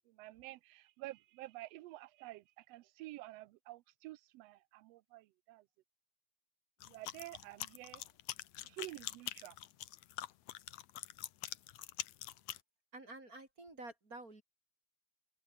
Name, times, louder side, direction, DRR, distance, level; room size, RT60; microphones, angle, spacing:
voice 1, 0.1-5.6 6.8-8.1 8.6-9.6, right 17 dB, 80° right, 1.5 m, -50 dB
sound 1, 6.8-12.6, left 14 dB, 70° left, 2.2 m, -45 dB
voice 2, 12.9-14.4, right 2 dB, 30° right, 4.0 m, -50 dB
open air
omnidirectional pair, 3.5 m